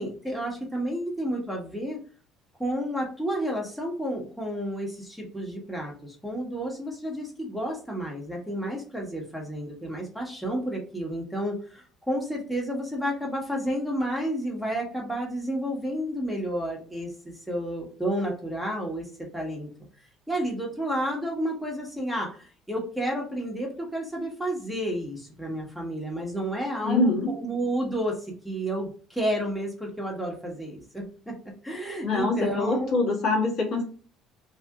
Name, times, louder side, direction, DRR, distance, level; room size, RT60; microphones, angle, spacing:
voice 1, 0.0-2.0 2.6-19.7 20.3-31.4 31.6-33.0, right 1 dB, ahead, -1 dB, 1.2 m, -31 dB
voice 2, 26.8-27.4 32.0-33.8, left 3 dB, 65° left, -2 dB, 1.4 m, -24 dB
2.8 x 2.5 x 3.6 m, 0.42 s
supercardioid pair, 80°, 0 cm